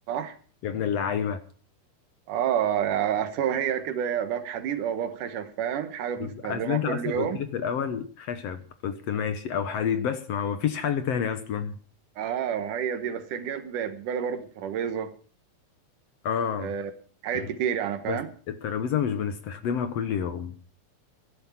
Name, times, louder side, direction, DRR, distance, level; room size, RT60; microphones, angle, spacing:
voice 1, 0.6-1.4 6.2-11.8 16.2-16.7 17.3-17.5 18.1-20.5, left 8 dB, 65° left, 2.0 m, -29 dB
voice 2, 2.3-7.4 12.2-15.1 16.6-16.9 17.2-18.3, right 9 dB, 85° right, 2.8 m, -29 dB
14.5 x 11.5 x 5.8 m
omnidirectional pair, 3.5 m